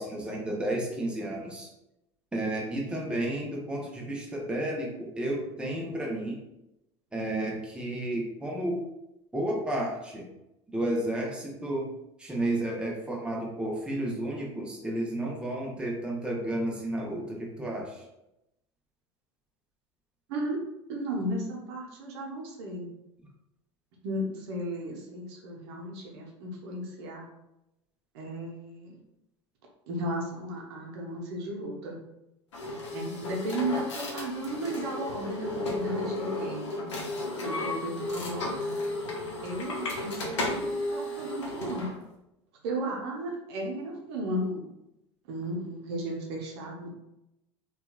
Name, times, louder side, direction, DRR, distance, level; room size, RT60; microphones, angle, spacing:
voice 1, 0.0-1.7 2.3-6.4 7.1-8.9 9.3-10.3 10.7-11.9 12.2-18.0, right 1 dB, 5° right, -2 dB, 0.6 m, -32 dB
voice 2, 20.9-22.9 24.0-27.3 28.1-29.0 29.9-32.0 32.9-36.6 37.4-38.6 39.4-41.9 42.6-44.7 45.3-46.9, right 1 dB, 65° right, -1 dB, 0.7 m, -34 dB
sound 1, 32.5-41.9, left 2 dB, 75° left, 0.6 m, -34 dB
2.8 x 2.3 x 2.2 m, 0.88 s
figure-of-eight pair, 75°, 15 cm